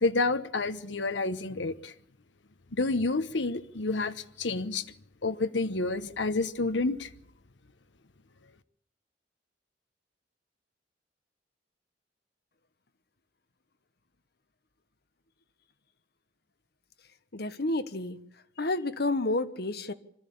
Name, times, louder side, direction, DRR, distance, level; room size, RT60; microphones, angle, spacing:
voice 1, 0.0-1.9 2.7-4.9 5.2-7.1, left 3 dB, 85° left, 1.0 m, -29 dB
voice 2, 17.3-18.2 18.6-19.9, left 2 dB, 60° left, 1.3 m, -30 dB
25.0 x 13.5 x 8.6 m
head